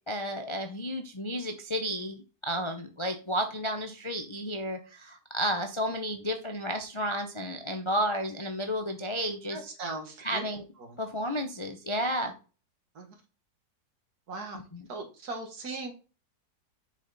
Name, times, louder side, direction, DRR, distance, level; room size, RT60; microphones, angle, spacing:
voice 1, 0.1-9.6 10.2-10.6 11.0-12.3 14.7-14.9, equal, 35° left, 5 dB, 0.4 m, -32 dB
voice 2, 9.5-10.5 10.9-11.0 13.0-13.1 14.3-14.6 14.9-15.9, right 3 dB, 65° right, 4 dB, 2.1 m, -38 dB
7.1 x 5.1 x 4.0 m, 0.34 s
omnidirectional pair, 1.8 m